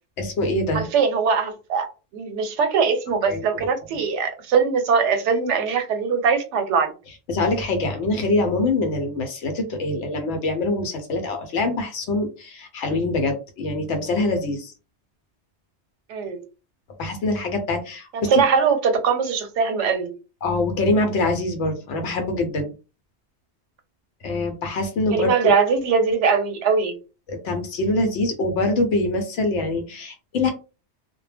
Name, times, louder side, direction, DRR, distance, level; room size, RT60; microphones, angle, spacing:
voice 1, 0.2-0.9 3.3-3.4 7.3-14.7 17.0-18.4 20.4-22.7 24.2-25.5 27.3-30.5, left 2 dB, 85° left, 0.9 m, -24 dB
voice 2, 0.7-1.9 2.1-6.9 16.1-16.4 18.1-20.1 25.1-27.0, right 5 dB, 85° right, 0.9 m, -21 dB
2.1 x 2.1 x 3.2 m
omnidirectional pair, 1.2 m